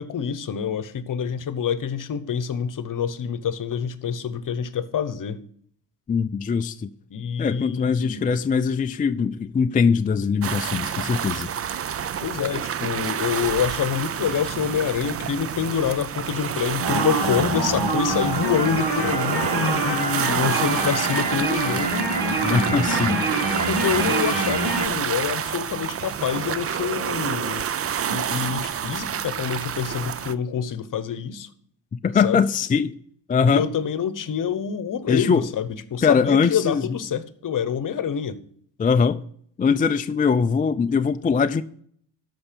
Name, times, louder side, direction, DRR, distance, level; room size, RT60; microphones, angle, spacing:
voice 1, 0.0-5.4 7.1-8.3 12.2-22.1 23.3-23.4 23.7-27.6 28.1-31.5 32.2-32.4 33.4-38.4, left 7 dB, 50° left, 1.0 m, -26 dB
voice 2, 6.1-6.9 7.4-11.5 22.4-23.2 31.9-33.0 33.3-33.7 35.1-35.5 36.0-36.8 38.8-39.2 39.6-41.6, left 5 dB, 20° left, 0.4 m, -21 dB
sound 1, 10.4-30.3, right 8 dB, 35° right, 0.5 m, -28 dB
sound 2, 16.8-24.9, right 2 dB, 65° right, 4.2 m, -25 dB
13.0 x 5.6 x 5.1 m
cardioid pair, 100°, 41 cm